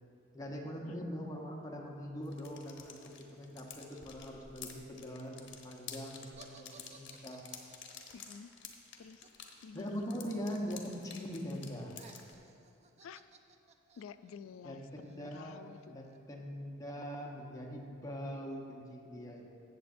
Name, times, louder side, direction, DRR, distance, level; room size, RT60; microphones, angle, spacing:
voice 1, 0.3-6.7 6.9-7.4 9.7-12.0 14.6-19.6, equal, 15° left, -1 dB, 0.9 m, -42 dB
sound 1, 2.2-12.3, left 7 dB, 60° left, 0.9 m, -51 dB
sound 2, 6.3-10.4 10.6-11.2 11.5-16.2, right 4 dB, 35° right, 0.4 m, -60 dB
voice 2, 8.1-8.5 9.0-9.3 9.6-10.1 13.0-13.3 14.0-16.0, left 6 dB, 90° left, 12 dB, 0.3 m, -51 dB
14.0 x 8.1 x 2.6 m, 2.6 s
head